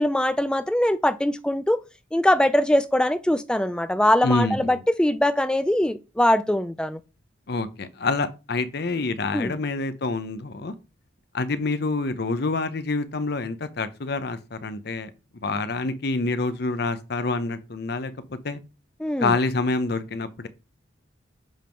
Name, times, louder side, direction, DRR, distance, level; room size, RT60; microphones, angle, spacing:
voice 1, 0.0-1.8 2.1-7.0 9.3-9.6 19.0-19.4, left 1 dB, 5° left, 0.3 m, -22 dB
voice 2, 4.2-4.8 7.5-10.7 11.3-15.1 15.4-18.6 19.2-20.5, left 3 dB, 55° left, 0.7 m, -27 dB
7.3 x 3.6 x 4.5 m
head